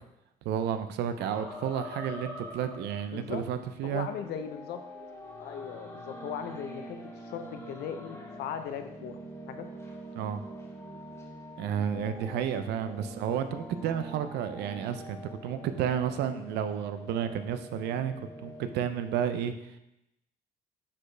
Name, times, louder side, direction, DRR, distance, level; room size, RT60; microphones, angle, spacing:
voice 1, 0.4-4.1 10.2-10.4 11.6-19.8, right 9 dB, 80° right, 10 dB, 0.6 m, -31 dB
sound 1, 1.2-3.4 3.8-19.3, equal, 15° left, 1.9 m, -45 dB
voice 2, 3.1-3.4 3.8-4.8 5.4-9.2 9.5-9.7 12.9-13.2, left 8 dB, 75° left, 8 dB, 0.8 m, -38 dB
9.9 x 4.3 x 3.3 m, 0.86 s
cardioid pair, 110°, 17 cm